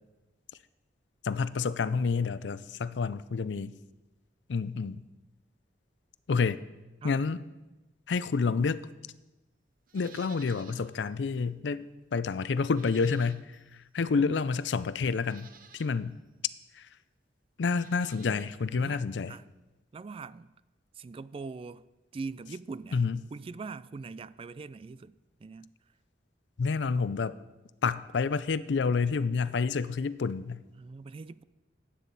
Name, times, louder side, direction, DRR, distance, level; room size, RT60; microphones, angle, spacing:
voice 1, 1.2-3.7 4.5-5.0 6.3-6.6 7.0-7.4 8.1-8.9 9.9-13.6 13.9-16.2 16.7-16.9 17.6-19.3 22.9-23.2 26.6-27.4 27.8-30.6, left 5 dB, 85° left, 0.5 m, -29 dB
Livestock farm animals working animals, 9.9-10.9 11.3-11.4 12.7-13.7 14.5-14.6 15.2-16.0 17.6-18.6 18.8-18.9, right 7 dB, 50° right, 0.8 m, -54 dB
voice 2, 18.7-19.0 19.3-19.4 19.9-20.5 20.9-21.8 22.1-23.0 23.3-25.7 30.8-31.4, right 4 dB, 30° right, 0.3 m, -42 dB
15.0 x 9.3 x 4.1 m
head